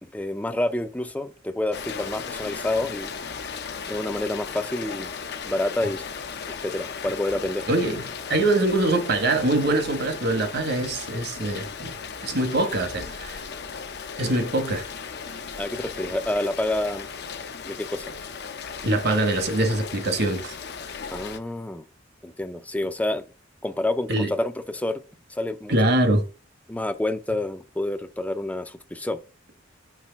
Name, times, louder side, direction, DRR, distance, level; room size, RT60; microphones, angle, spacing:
voice 1, 0.0-3.1 3.9-5.1 5.4-6.0 6.6-7.7 15.6-17.1 17.6-18.1 21.1-21.8 22.2-23.3 23.6-25.0 25.3-25.7 26.7-29.2, left 1 dB, 10° left, 0.5 m, -28 dB
Rain, 1.7-21.4, left 6 dB, 60° left, 0.7 m, -36 dB
voice 2, 7.7-8.0 8.3-11.9 12.2-13.4 14.2-14.9 18.8-20.5 24.1-24.3 25.7-26.2, right 2 dB, 55° right, 1.3 m, -23 dB
6.1 x 3.2 x 5.8 m
head